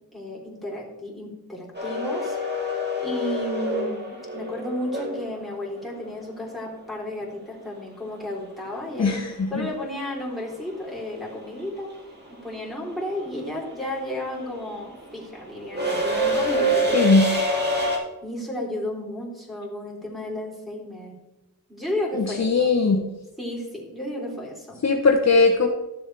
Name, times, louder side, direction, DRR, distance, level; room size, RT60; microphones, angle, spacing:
voice 1, 0.1-2.4 3.0-9.2 9.5-11.9 12.3-17.2 18.2-21.2 21.7-22.7 23.4-24.8, left 1 dB, ahead, -5 dB, 3.6 m, -33 dB
sound 1, 1.7-5.8 8.2-8.3 9.6-9.9 10.2-18.0, right 1 dB, 30° right, 2.5 m, -26 dB
voice 2, 9.0-9.7 16.9-17.3 22.1-23.1 24.8-25.7, left 3 dB, 45° left, 2 dB, 0.9 m, -19 dB
13.5 x 7.1 x 3.4 m, 1.0 s
wide cardioid pair, 90°, 37 cm